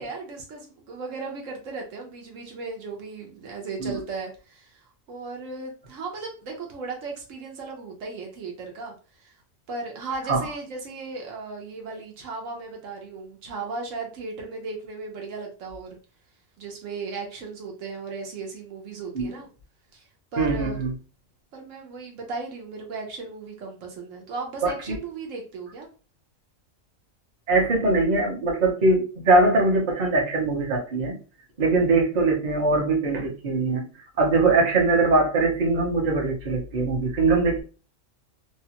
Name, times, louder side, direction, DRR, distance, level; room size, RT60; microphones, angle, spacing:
voice 1, 0.0-9.3 9.7-16.0 16.6-19.5 19.9-20.0 20.3-20.8 21.5-25.9, right 3 dB, 80° right, 1 dB, 1.1 m, -36 dB
voice 2, 20.4-20.9 24.6-25.0 27.5-31.1 31.6-33.9 34.2-37.6, right 3 dB, 40° right, -1 dB, 0.7 m, -22 dB
2.8 x 2.2 x 2.8 m, 0.36 s
omnidirectional pair, 1.3 m